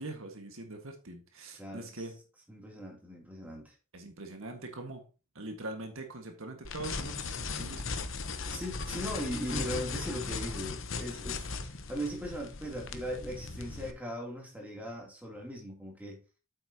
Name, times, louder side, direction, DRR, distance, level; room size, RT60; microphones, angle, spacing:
voice 1, 0.0-2.2 3.9-5.0 5.3-7.8, right 2 dB, 70° right, 1.7 m, -42 dB
voice 2, 1.5-2.0 2.5-3.7 8.5-16.2, equal, 5° right, 3.0 m, -39 dB
sound 1, 6.6-13.9, left 4 dB, 65° left, 1.0 m, -38 dB
8.9 x 8.2 x 2.9 m
head